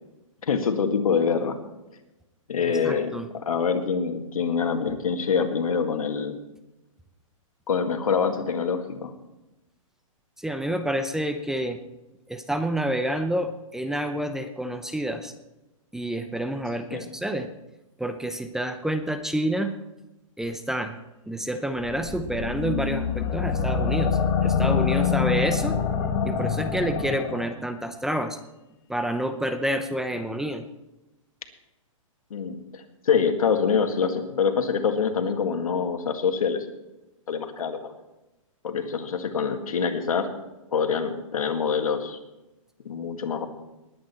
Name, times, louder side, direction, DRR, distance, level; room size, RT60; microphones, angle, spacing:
voice 1, 0.4-1.6 2.5-6.4 7.7-9.1 16.9-17.1 32.3-36.7 37.3-38.0 38.6-40.3 40.7-42.2 42.9-43.5, left 6 dB, 90° left, 6 dB, 1.9 m, -25 dB
voice 2, 2.6-3.3 10.4-11.8 12.3-15.3 15.9-17.5 18.0-19.7 20.4-21.0 21.3-25.8 26.2-28.4 28.9-30.6, right 1 dB, 5° right, 8 dB, 0.6 m, -28 dB
sound 1, 21.8-27.5, left 6 dB, 40° left, 2.1 m, -25 dB
20.0 x 8.8 x 4.3 m, 0.99 s
hypercardioid pair, 145°, 18 cm